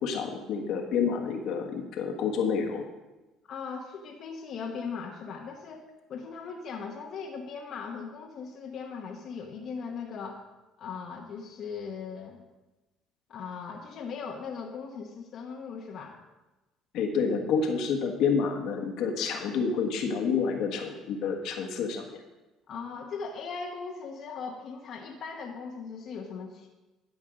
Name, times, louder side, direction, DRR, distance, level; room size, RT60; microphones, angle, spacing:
voice 1, 0.0-2.8 16.9-22.1, left 5 dB, 70° left, 3 dB, 1.4 m, -28 dB
voice 2, 3.5-10.4 10.8-12.4 13.3-16.2 22.7-26.7, left 5 dB, 55° left, 0 dB, 1.1 m, -39 dB
12.5 x 5.4 x 5.0 m, 1.1 s
cardioid pair, 105°, 0 cm